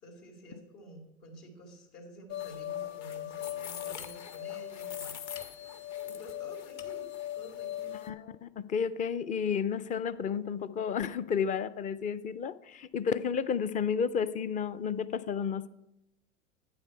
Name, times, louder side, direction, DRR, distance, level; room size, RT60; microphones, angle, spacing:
voice 1, 0.0-5.2 6.0-7.1 7.3-8.0, equal, 70° left, 4.4 m, -50 dB
sound 1, 2.3-8.1, left 12 dB, 45° left, 1.3 m, -39 dB
voice 2, 7.9-15.7, left 6 dB, 20° left, 0.5 m, -32 dB
11.5 x 9.4 x 4.6 m
hypercardioid pair, 95°, 36 cm